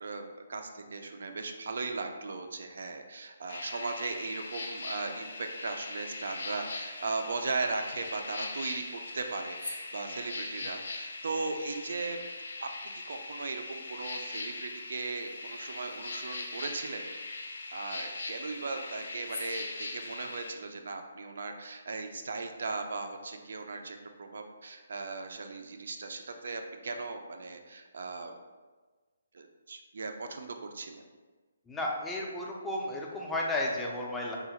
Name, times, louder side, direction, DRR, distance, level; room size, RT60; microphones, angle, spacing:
voice 1, 0.0-8.8 9.1-12.2 12.6-17.0 17.7-28.3 29.3-31.1, right 3 dB, 65° right, 5 dB, 0.3 m, -37 dB
sound 1, 3.5-20.5, left 3 dB, 75° left, 0.4 m, -40 dB
voice 2, 31.7-34.4, left 1 dB, 5° left, -2 dB, 0.3 m, -33 dB
3.6 x 2.0 x 2.8 m, 1.3 s
hypercardioid pair, 165°, 0 cm